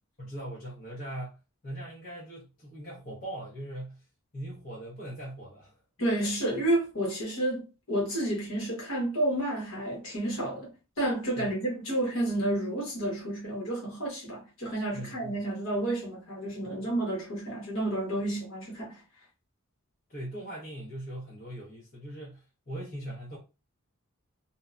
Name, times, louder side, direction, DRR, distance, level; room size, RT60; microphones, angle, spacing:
voice 1, 0.2-4.0 4.3-5.8 11.4-11.5 14.9-15.3 16.6-16.8 20.1-23.4, right 1 dB, 40° left, 1.0 m, -40 dB
voice 2, 6.0-10.7 11.0-19.0, right 1 dB, 60° left, 1.3 m, -30 dB
2.8 x 2.2 x 2.4 m
head